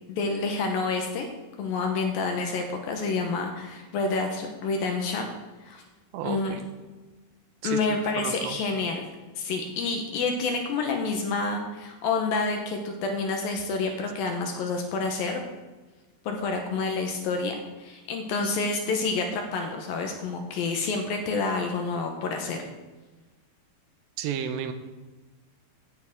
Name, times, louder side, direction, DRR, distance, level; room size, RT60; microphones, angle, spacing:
voice 1, 0.1-1.3 1.6-5.3 5.6-5.8 6.2-6.6 7.6-9.1 9.4-15.4 16.3-22.6, left 4 dB, 70° left, 3 dB, 2.4 m, -28 dB
voice 2, 6.1-6.7 7.6-7.8 8.2-8.6 24.2-24.7, right 9 dB, 85° right, 8 dB, 3.0 m, -32 dB
16.5 x 9.1 x 3.6 m, 1.2 s
omnidirectional pair, 5.0 m